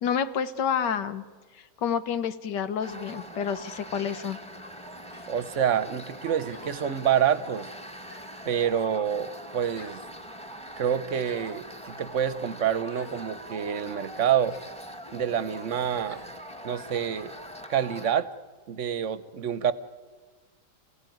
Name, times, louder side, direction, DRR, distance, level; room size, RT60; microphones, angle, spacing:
voice 1, 0.0-1.2 1.8-4.4, left 7 dB, 80° left, 12 dB, 1.6 m, -29 dB
sound 1, 2.8-18.1, equal, 5° left, 1.4 m, -43 dB
sound 2, 3.7-3.9 5.1-5.3 6.5-6.9 8.1-8.5 9.8-10.1 11.2-11.7 13.0-13.3 14.5-14.8 16.1-16.4, left 3 dB, 40° left, 2.0 m, -51 dB
voice 2, 5.3-7.7 8.4-10.0 10.8-14.6 15.1-16.2 16.6-17.3 17.7-18.3 18.7-19.7, right 9 dB, 55° right, 15 dB, 1.1 m, -27 dB
28.0 x 16.5 x 9.3 m, 1.5 s
omnidirectional pair, 1.9 m